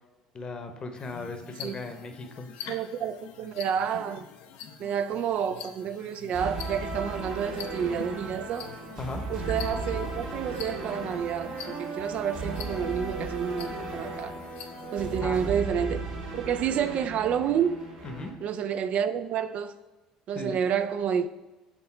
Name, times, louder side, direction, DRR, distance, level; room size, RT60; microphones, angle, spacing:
voice 1, 0.3-2.5 9.0-9.2 15.2-15.4 18.0-18.3 20.3-20.6, left 3 dB, 35° left, 0.9 m, -37 dB
sound 1, 0.9-15.2, left 8 dB, 65° left, 0.5 m, -45 dB
voice 2, 2.7-4.3 4.8-8.7 9.3-14.4 14.9-16.1 16.3-17.8 18.4-19.7 20.3-21.3, right 8 dB, 50° right, 0.3 m, -29 dB
sound 2, 6.3-18.3, right 2 dB, 70° right, 1.3 m, -36 dB
6.0 x 3.8 x 4.3 m
hypercardioid pair, 65°, 3 cm